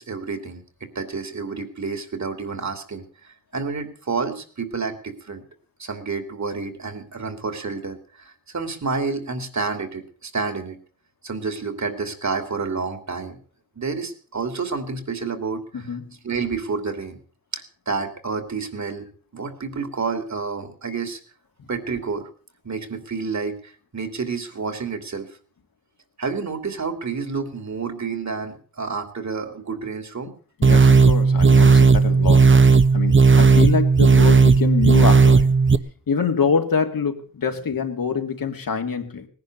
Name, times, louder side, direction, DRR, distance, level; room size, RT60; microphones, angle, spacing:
voice 1, 0.0-5.4 5.8-10.8 11.2-13.4 13.8-15.9 16.2-17.2 17.5-21.2 21.7-22.3 22.6-25.3 26.2-30.3 37.7-37.8, right 4 dB, 55° right, 9 dB, 2.8 m, -29 dB
voice 2, 15.7-16.1 30.6-32.5 32.9-35.5 36.1-39.3, left 6 dB, 80° left, 4 dB, 2.5 m, -25 dB
sound 1, 30.6-35.8, right 4 dB, 35° right, 0.9 m, -14 dB
19.0 x 10.5 x 6.6 m, 0.43 s
wide cardioid pair, 80°, 33 cm